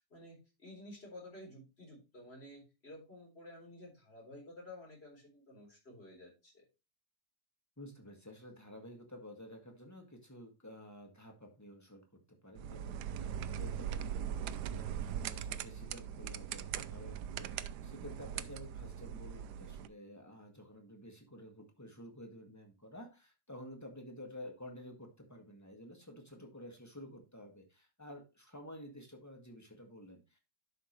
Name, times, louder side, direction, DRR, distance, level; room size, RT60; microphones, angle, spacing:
voice 1, 0.0-6.6, left 1 dB, 40° left, -2 dB, 4.2 m, -52 dB
voice 2, 7.8-30.4, left 1 dB, 10° left, 3 dB, 1.8 m, -52 dB
sound 1, 12.6-19.9, right 9 dB, 90° right, 1.2 m, -40 dB
11.0 x 5.6 x 3.1 m, 0.28 s
omnidirectional pair, 1.7 m